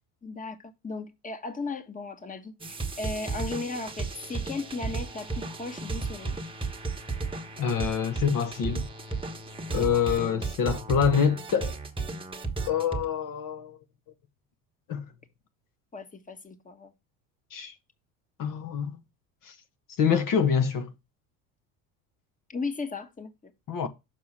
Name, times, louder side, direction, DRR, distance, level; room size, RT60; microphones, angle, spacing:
voice 1, 0.2-6.4 9.8-10.1 15.9-16.9 22.5-23.5, left 3 dB, 20° left, 1.4 m, -36 dB
sound 1, 2.6-13.0, right 3 dB, 10° right, 1.3 m, -34 dB
voice 2, 7.6-8.9 9.7-11.8 12.7-13.8 14.9-15.0 17.5-17.7 18.4-19.0 19.4-19.5 20.0-20.9 23.7-23.9, left 7 dB, 50° left, 1.4 m, -26 dB
6.8 x 4.8 x 5.6 m
supercardioid pair, 85°, 42 cm